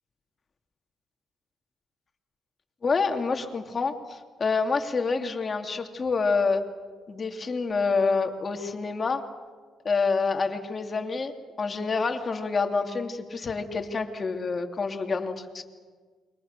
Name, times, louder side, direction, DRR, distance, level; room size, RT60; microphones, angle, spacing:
voice 1, 2.8-6.6 7.1-9.2 9.8-15.6, left 4 dB, 35° left, 4 dB, 2.9 m, -27 dB
29.5 x 24.0 x 6.8 m, 1.5 s
cardioid pair, 90°, 0 cm